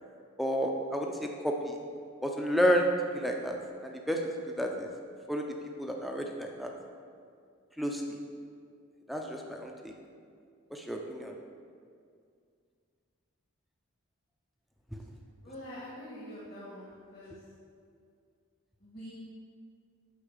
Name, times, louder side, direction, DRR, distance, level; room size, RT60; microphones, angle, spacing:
voice 1, 0.4-1.8 2.2-3.6 3.8-4.2 4.6-4.9 5.3-5.4 5.8-6.7 7.8-8.2 9.1-9.9 10.7-11.3 14.9-15.0, equal, ahead, 1 dB, 0.6 m, -31 dB
voice 2, 15.4-17.4 18.8-19.1, equal, 45° left, -8 dB, 1.8 m, -45 dB
10.0 x 4.1 x 6.6 m, 2.2 s
head